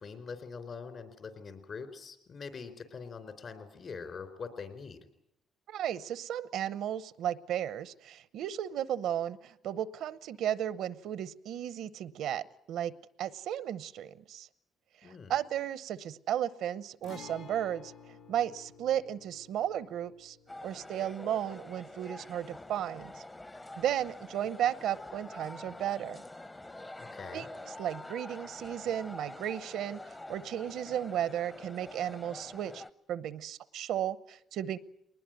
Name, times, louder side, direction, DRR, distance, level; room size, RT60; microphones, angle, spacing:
voice 1, 0.0-5.0 15.0-15.3 27.1-27.5, left 5 dB, 50° left, 9 dB, 4.0 m, -43 dB
voice 2, 5.7-12.9 13.2-14.5 15.0-17.9 18.3-20.4 20.6-23.2 23.8-26.2 27.3-32.8 33.1-34.8, right 10 dB, 80° right, 16 dB, 0.8 m, -34 dB
Guitar, 17.0-24.6 24.9-25.0 27.0-27.2, left 6 dB, 90° left, 2.9 m, -54 dB
sound 1, 20.5-32.9, left 2 dB, 20° left, 0.9 m, -47 dB
21.5 x 20.0 x 9.0 m, 0.78 s
cardioid pair, 90°, 0 cm